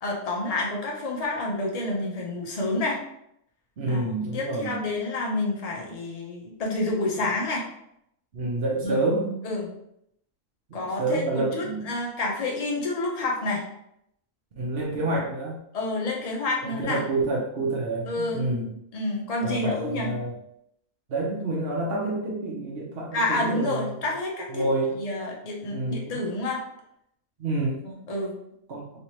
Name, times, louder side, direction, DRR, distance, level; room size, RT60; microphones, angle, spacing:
voice 1, 0.0-3.0 3.9-4.0 4.3-7.7 8.8-9.1 9.4-9.7 10.7-13.6 15.7-17.0 18.0-18.5 18.9-20.1 23.1-24.6 24.9-26.6 27.8-28.3, left 2 dB, 40° left, -2 dB, 0.5 m, -29 dB
voice 2, 3.8-4.8 8.3-9.4 10.7-11.9 14.6-15.6 16.6-18.7 19.4-20.4 21.1-23.9 24.5-25.0 25.7-26.2 27.4-27.8 28.7-28.8, right 2 dB, 50° right, -4 dB, 0.9 m, -28 dB
3.2 x 2.9 x 2.9 m, 0.76 s
omnidirectional pair, 1.5 m